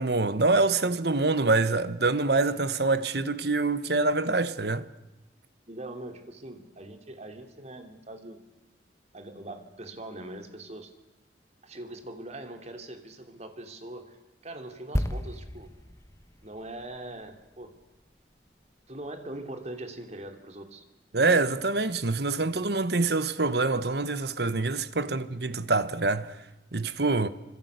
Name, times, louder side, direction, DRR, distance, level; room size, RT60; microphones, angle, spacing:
voice 1, 0.0-4.9 21.1-26.4 26.7-27.3, right 3 dB, 65° right, 1.3 m, -25 dB
voice 2, 5.7-8.4 9.1-10.9 11.6-14.2 14.4-15.7 16.4-17.7 18.9-20.8 25.0-25.1, right 1 dB, 40° right, 3.0 m, -42 dB
sound 1, 14.9-18.6 18.9-19.1, equal, 15° left, 1.6 m, -35 dB
26.5 x 26.0 x 8.2 m
head